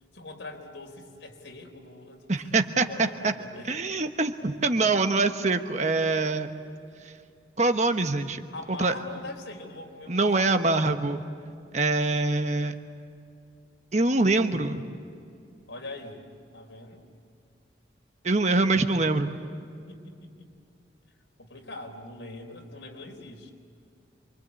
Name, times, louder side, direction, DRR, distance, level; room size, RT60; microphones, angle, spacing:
voice 1, 0.1-2.3 2.6-3.8 8.5-10.7 15.7-17.0 19.9-20.5 21.4-23.5, left 2 dB, 90° left, 2 dB, 3.9 m, -43 dB
voice 2, 2.3-3.3 3.7-6.5 7.6-8.4 8.8-8.9 10.1-11.2 11.7-12.7 13.9-14.8 18.2-19.3, right 3 dB, 40° right, 7 dB, 1.2 m, -24 dB
28.0 x 24.5 x 8.4 m, 2.4 s
head